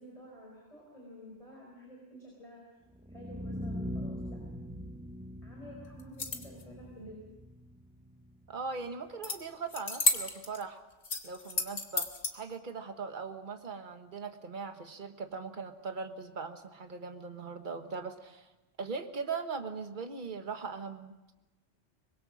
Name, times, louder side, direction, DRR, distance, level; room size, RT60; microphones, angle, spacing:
voice 1, 0.0-2.6 3.1-4.4 5.4-7.2, equal, 30° left, -2 dB, 5.0 m, -50 dB
sound 1, 2.9-8.9, equal, 5° right, 0.8 m, -42 dB
sound 2, 6.0-6.6 9.2-9.4 9.7-10.6 11.0-12.3, left 3 dB, 70° left, 2.0 m, -31 dB
voice 2, 8.5-10.8 11.2-18.5 18.8-21.3, right 5 dB, 45° right, 7 dB, 1.5 m, -40 dB
24.0 x 21.0 x 6.3 m, 1.1 s
omnidirectional pair, 1.2 m